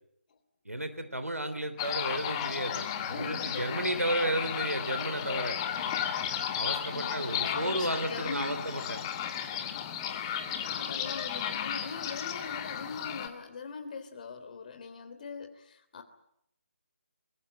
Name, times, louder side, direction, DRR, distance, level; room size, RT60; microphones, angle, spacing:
voice 1, 0.7-5.6 6.5-9.0, right 1 dB, 90° right, 9 dB, 3.7 m, -33 dB
sound 1, 1.8-13.3, left 9 dB, 20° left, 1.9 m, -34 dB
voice 2, 3.1-3.9 5.7-6.1 6.9-8.6 10.0-16.0, left 5 dB, 35° left, 9 dB, 3.4 m, -42 dB
23.0 x 22.0 x 8.9 m, 0.76 s
figure-of-eight pair, 155°, 8 cm